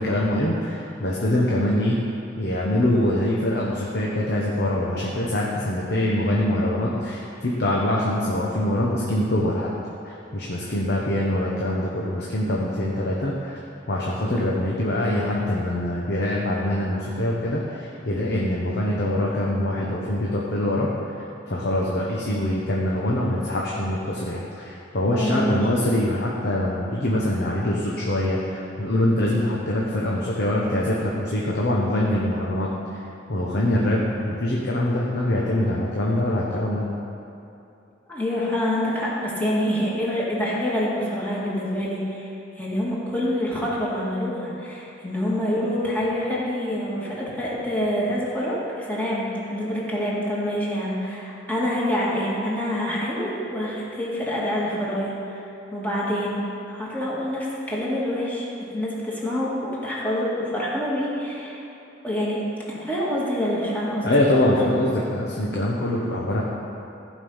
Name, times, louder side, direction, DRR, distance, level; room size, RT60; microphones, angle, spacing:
voice 1, 0.0-2.0 2.4-9.7 10.0-13.6 13.9-20.9 21.5-33.0 33.3-36.9 64.0-66.4, left 1 dB, 60° left, -4 dB, 1.1 m, -24 dB
voice 2, 25.1-25.5 38.1-42.3 42.6-55.4 55.7-56.4 56.7-61.6 62.0-62.4 62.7-64.1, equal, 10° left, -6 dB, 2.0 m, -26 dB
15.0 x 5.4 x 5.6 m, 2.7 s
head